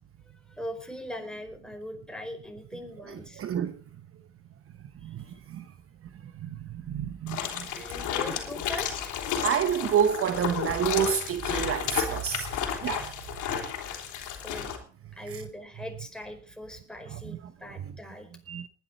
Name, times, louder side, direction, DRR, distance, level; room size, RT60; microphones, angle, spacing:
voice 1, 0.5-3.4 7.7-9.2 14.4-14.7 15.1-18.3, left 1 dB, ahead, 4.9 m, -41 dB
voice 2, 3.1-3.8 5.0-5.7 6.2-8.4 9.4-13.1 15.3-15.4 17.1-17.4 17.7-18.0 18.5-18.7, right 8 dB, 45° right, 1.0 m, -30 dB
sound 1, 7.3-14.8, left 8 dB, 65° left, 3.7 m, -32 dB
20.0 x 10.5 x 4.2 m
hypercardioid pair, 65°, 32 cm